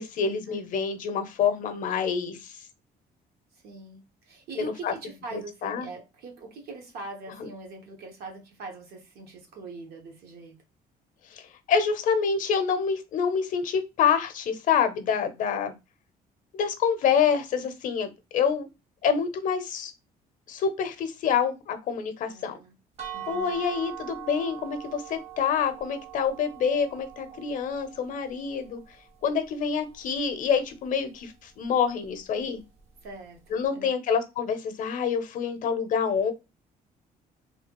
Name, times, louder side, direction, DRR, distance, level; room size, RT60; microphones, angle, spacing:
voice 1, 0.0-2.6 4.6-4.9 5.3-5.9 7.4-7.5 11.3-15.7 16.5-18.7 19.0-19.9 20.5-22.6 23.3-28.8 29.2-32.6 33.5-36.3, left 6 dB, 55° left, 0.6 m, -27 dB
voice 2, 3.5-10.6 22.3-22.7 23.1-23.6 33.0-33.9, right 3 dB, 75° right, 1.0 m, -42 dB
sound 1, 23.0-28.8, right 12 dB, 40° right, 0.8 m, -42 dB
3.2 x 2.3 x 2.9 m
cardioid pair, 155°, 16 cm